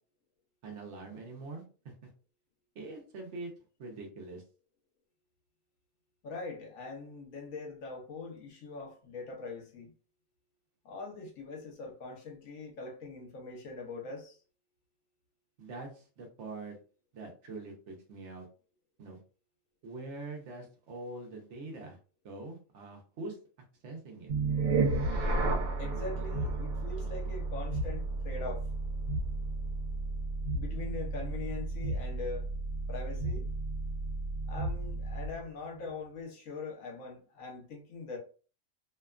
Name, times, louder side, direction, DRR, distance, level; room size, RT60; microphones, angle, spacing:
voice 1, 0.6-2.1 2.7-3.5 3.8-4.4 15.6-16.8 17.1-18.5 19.0-19.2 19.8-22.0 22.2-23.4 23.8-24.3, right 2 dB, 65° right, 1.0 m, -44 dB
voice 2, 6.2-9.9 10.8-14.4 25.8-28.7 30.5-32.5 32.9-33.5 34.5-38.2, left 3 dB, 75° left, 1.2 m, -42 dB
sound 1, 24.3-35.4, right 3 dB, 90° right, 1.1 m, -33 dB
2.8 x 2.2 x 2.3 m
omnidirectional pair, 1.4 m